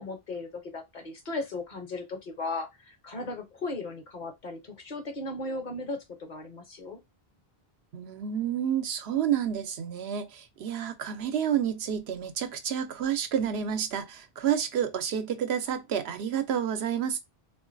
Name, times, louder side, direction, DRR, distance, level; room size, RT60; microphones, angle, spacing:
voice 1, 0.0-7.0, left 2 dB, 50° left, 0.9 m, -36 dB
voice 2, 7.9-17.2, right 9 dB, 85° right, 0.9 m, -29 dB
3.6 x 2.5 x 2.5 m
omnidirectional pair, 1.0 m